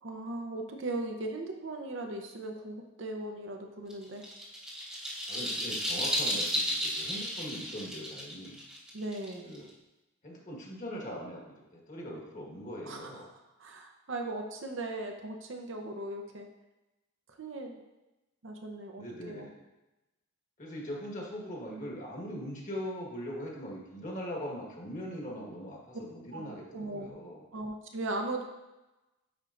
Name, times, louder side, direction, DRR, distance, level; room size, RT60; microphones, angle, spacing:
voice 1, 0.0-4.2 8.9-9.5 12.8-16.5 17.4-17.8 18.4-19.5 26.3-27.1 27.5-28.4, right 2 dB, 60° right, 3 dB, 0.7 m, -38 dB
sound 1, 3.9-9.7, equal, 5° right, 0.9 m, -33 dB
voice 2, 5.3-8.6 9.4-9.7 10.2-13.3 19.0-19.5 20.6-27.4, equal, 35° left, -2 dB, 1.4 m, -41 dB
10.0 x 4.4 x 2.5 m, 1.0 s
head